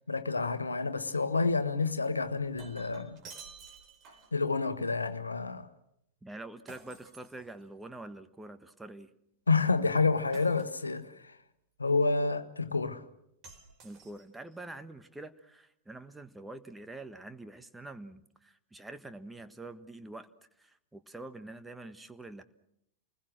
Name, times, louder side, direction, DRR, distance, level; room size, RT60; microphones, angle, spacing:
voice 1, 0.1-3.2 4.3-5.7 9.5-11.4 11.8-13.0, left 4 dB, 80° left, 1.3 m, -29 dB
Shatter, 2.3-4.4 6.7-8.0 10.3-11.1 13.4-14.5, right 5 dB, 35° right, 4.3 m, -52 dB
voice 2, 6.2-9.1 13.8-20.3 20.6-22.4, right 2 dB, 10° right, 1.4 m, -46 dB
29.5 x 21.0 x 6.4 m
figure-of-eight pair, 90°, 0 cm